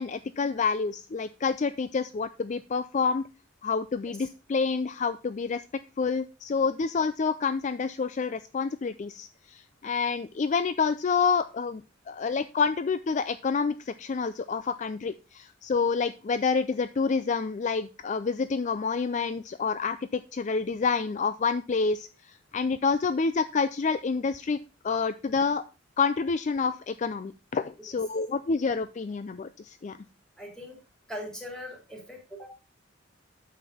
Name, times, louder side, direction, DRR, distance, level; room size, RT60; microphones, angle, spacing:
voice 1, 0.0-3.2 3.6-5.6 6.0-11.8 12.1-24.6 24.8-25.6 26.0-30.0, left 5 dB, 40° left, 13 dB, 0.4 m, -28 dB
voice 2, 30.4-30.8 31.1-32.5, equal, 5° left, -1 dB, 3.8 m, -40 dB
9.3 x 7.3 x 4.2 m, 0.31 s
head